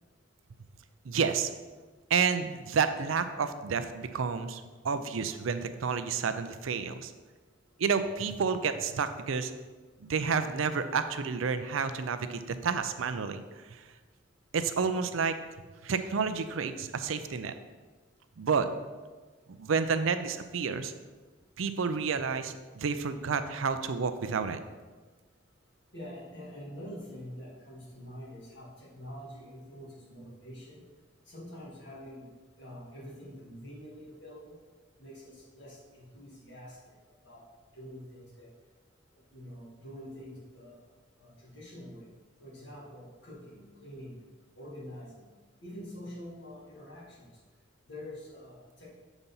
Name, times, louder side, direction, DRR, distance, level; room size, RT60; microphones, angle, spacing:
voice 1, 1.0-1.5 2.1-7.1 7.8-9.5 10.1-13.4 14.5-15.4 15.8-17.5 18.4-18.7 19.6-20.9 21.6-24.6, right 5 dB, 85° right, 10 dB, 0.5 m, -30 dB
voice 2, 25.9-30.8 31.3-32.3 32.6-34.6 35.0-36.8 37.2-37.4 37.7-38.5 39.3-40.8 41.2-42.1 42.4-44.2 44.6-45.3 45.6-47.2 47.9-48.9, equal, 60° left, -4 dB, 2.2 m, -46 dB
7.1 x 4.0 x 5.5 m, 1.3 s
head